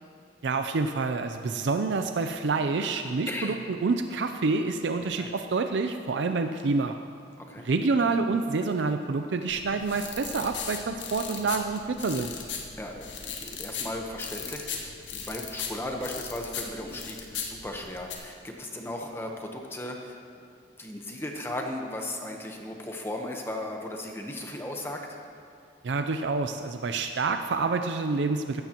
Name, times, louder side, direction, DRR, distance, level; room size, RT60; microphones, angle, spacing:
voice 1, 0.4-6.9 7.6-12.3 25.8-28.6, right 4 dB, 80° right, 7 dB, 0.5 m, -27 dB
voice 2, 3.3-3.6 5.1-5.3 7.4-7.7 12.8-20.2 20.8-25.2, left 1 dB, 15° left, 2 dB, 0.9 m, -36 dB
sound 1, 9.5-18.2, left 6 dB, 90° left, 1.4 m, -38 dB
16.0 x 13.5 x 3.0 m, 2.5 s
head